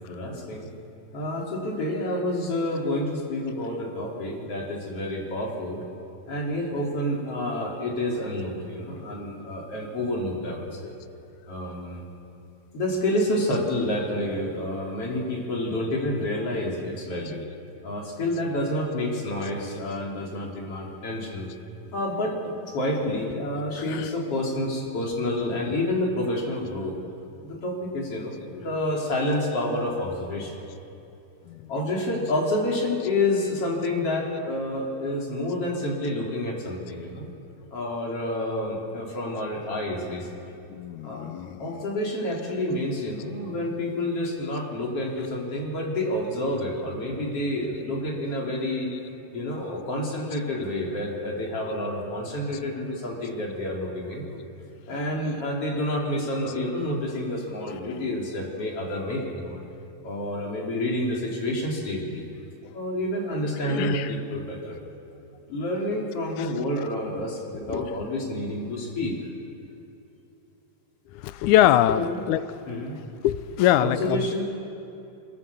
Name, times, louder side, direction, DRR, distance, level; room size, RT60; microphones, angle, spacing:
voice 1, 0.1-0.7 1.1-5.8 6.3-10.9 11.5-12.0 12.7-17.4 17.8-21.5 21.9-22.3 22.7-26.9 27.4-30.6 31.7-37.3 37.7-40.5 41.0-41.3 41.6-48.9 49.3-54.4 54.9-59.6 60.0-62.3 62.7-64.8 65.5-69.1 71.9-72.2 72.7-73.0 73.8-74.4, left 1 dB, 45° left, -1 dB, 4.2 m, -29 dB
voice 2, 23.8-24.1 25.7-25.8 31.5-31.8 33.0-33.1 39.6-39.7 40.7-41.9 56.5-56.6 57.7-57.8 63.6-64.2 66.4-66.9 67.5-68.0 71.1-72.4 73.2-74.3, left 12 dB, 75° left, 13 dB, 2.0 m, -25 dB
23.5 x 23.5 x 7.0 m, 2.8 s
omnidirectional pair, 4.0 m